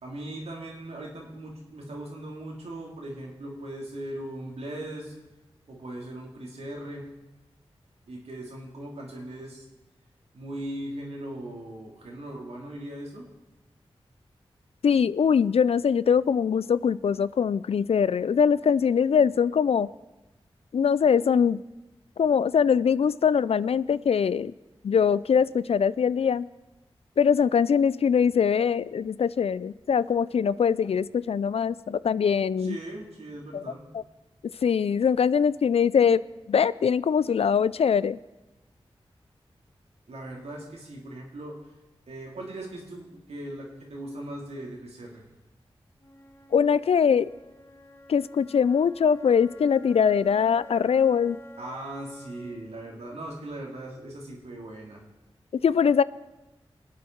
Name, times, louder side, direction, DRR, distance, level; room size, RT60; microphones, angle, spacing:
voice 1, 0.0-5.1 5.7-7.1 8.1-9.6 10.3-13.3 32.6-33.8 40.1-41.6 42.1-45.2 51.6-55.0, right 1 dB, 85° right, -1 dB, 2.8 m, -39 dB
voice 2, 14.8-19.9 20.7-21.6 22.2-24.5 24.8-26.5 27.2-32.8 33.5-33.6 33.9-34.0 34.4-36.2 36.5-38.2 46.5-47.3 48.1-51.4 55.5-56.0, left 7 dB, 70° left, 18 dB, 0.4 m, -22 dB
Wind instrument woodwind instrument, 46.0-54.0, equal, 25° left, 1.2 m, -50 dB
22.0 x 8.5 x 4.6 m, 1.1 s
cardioid pair, 45°, 10 cm